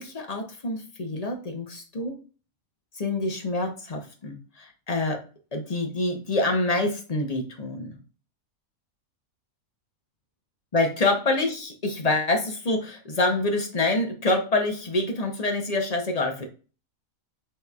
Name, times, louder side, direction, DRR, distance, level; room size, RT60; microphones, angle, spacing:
voice 1, 0.0-2.2 2.9-5.2 5.5-8.0 10.7-16.5, left 2 dB, 35° left, 3 dB, 0.7 m, -26 dB
6.0 x 3.1 x 2.3 m, 0.36 s
omnidirectional pair, 1.5 m